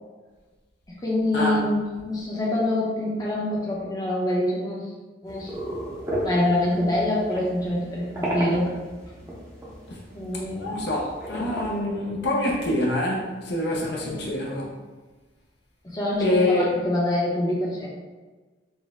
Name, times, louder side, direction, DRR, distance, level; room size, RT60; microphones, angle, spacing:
voice 1, 1.0-4.9 5.2-5.5 6.2-8.8 10.1-10.8 11.3-11.4 13.9-14.2 15.8-17.9, left 1 dB, 20° left, -6 dB, 0.7 m, -25 dB
sound 1, 5.3-11.8, right 1 dB, 15° right, 0.7 m, -34 dB
voice 2, 10.6-14.7 16.2-16.7, left 1 dB, 60° left, -2 dB, 0.6 m, -25 dB
4.2 x 2.1 x 3.6 m, 1.3 s
head